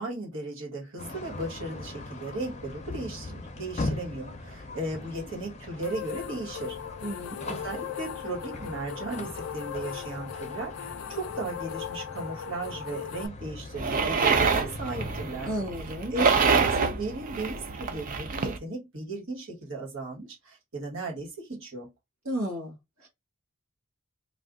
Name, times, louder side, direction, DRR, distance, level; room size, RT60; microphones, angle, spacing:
voice 1, 0.0-6.8 7.1-7.2 7.4-15.5 16.1-21.9, right 2 dB, 60° right, 1.4 m, -36 dB
sound 1, 1.0-15.7, left 2 dB, 30° left, 0.6 m, -40 dB
sound 2, 5.8-13.3, left 9 dB, 80° left, 0.4 m, -38 dB
voice 2, 7.0-7.4 15.5-16.1 22.2-23.1, equal, 80° right, 1.3 m, -33 dB
sound 3, 13.8-18.6, right 5 dB, 40° right, 0.4 m, -26 dB
2.5 x 2.5 x 3.5 m
head